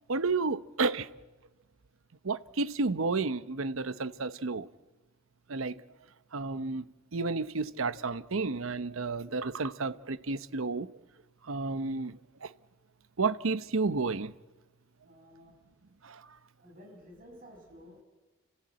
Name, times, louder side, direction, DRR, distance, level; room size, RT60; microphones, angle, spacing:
voice 1, 0.1-1.1 2.2-4.7 5.5-5.8 6.3-10.9 11.5-12.5 13.2-14.3 16.0-16.2, right 3 dB, 80° right, 0.8 m, -31 dB
voice 2, 15.0-15.5 16.6-18.0, equal, 40° right, 7.5 m, -53 dB
29.0 x 14.5 x 8.8 m
head